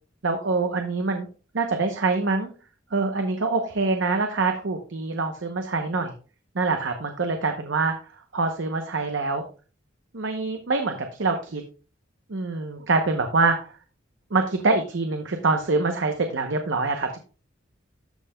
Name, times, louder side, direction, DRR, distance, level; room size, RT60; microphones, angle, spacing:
voice 1, 0.2-1.3 1.5-2.5 2.9-6.1 6.5-8.0 8.3-9.4 10.1-11.6 12.3-13.7 14.3-17.2, right 3 dB, 80° right, 5 dB, 0.8 m, -25 dB
13.5 x 5.6 x 2.2 m, 0.36 s
head